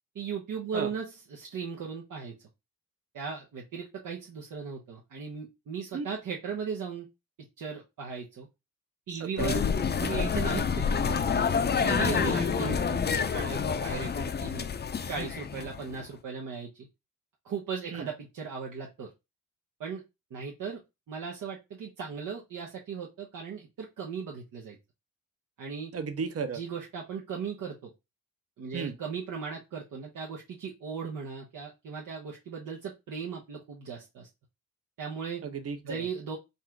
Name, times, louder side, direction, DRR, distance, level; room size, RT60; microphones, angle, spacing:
voice 1, 0.1-2.3 3.1-7.1 7.6-8.5 9.1-9.6 10.0-14.7 15.1-16.9 17.4-19.1 19.8-20.0 20.3-20.8 21.1-24.8 25.6-25.9 26.5-27.9 28.6-34.3 35.0-35.4 35.8-36.4, right 6 dB, 75° right, 1.0 m, -37 dB
sound 1, 9.4-16.0, left 6 dB, 30° left, 0.5 m, -28 dB
voice 2, 25.9-26.6 28.7-28.9 35.4-36.0, right 5 dB, 45° right, 0.8 m, -34 dB
4.1 x 2.5 x 4.5 m
cardioid pair, 100°, 32 cm